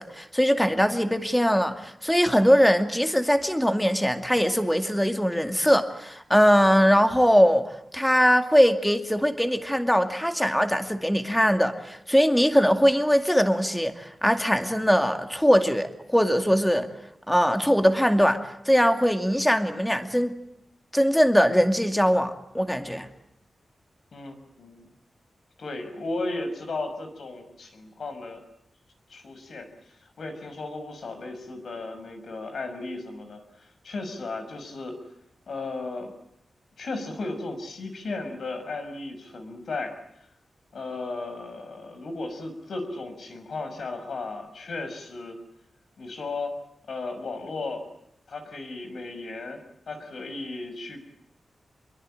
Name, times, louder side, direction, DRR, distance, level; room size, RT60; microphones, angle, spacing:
voice 1, 0.0-16.9 17.3-20.3 20.9-23.1, equal, 5° left, 7 dB, 2.3 m, -21 dB
voice 2, 24.1-24.9 25.6-28.4 29.1-35.0 35.5-36.1 36.8-40.3 40.7-45.4 46.0-46.6 46.9-47.9 48.3-49.6 49.9-51.0, left 3 dB, 70° left, 7 dB, 5.9 m, -35 dB
27.0 x 23.5 x 9.0 m, 0.76 s
wide cardioid pair, 120°, 0 cm